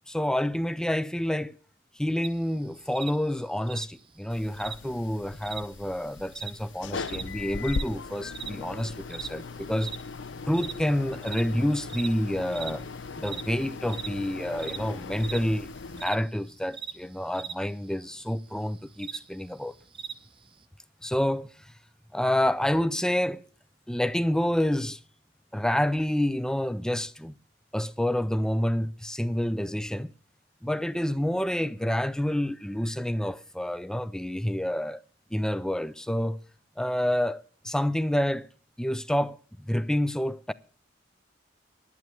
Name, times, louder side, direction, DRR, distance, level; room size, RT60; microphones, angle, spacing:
voice 1, 0.1-1.5 2.0-9.9 10.5-12.9 13.2-19.7 21.0-21.5 22.1-23.4 23.9-25.0 25.5-27.3 27.7-30.1 30.6-35.0 35.3-36.4 36.8-38.5 38.8-40.5, left 1 dB, 5° left, 0.5 m, -28 dB
sound 1, 2.2-20.6, right 7 dB, 30° right, 0.8 m, -42 dB
sound 2, 4.3-16.0, left 4 dB, 70° left, 0.6 m, -39 dB
11.0 x 9.3 x 6.8 m
head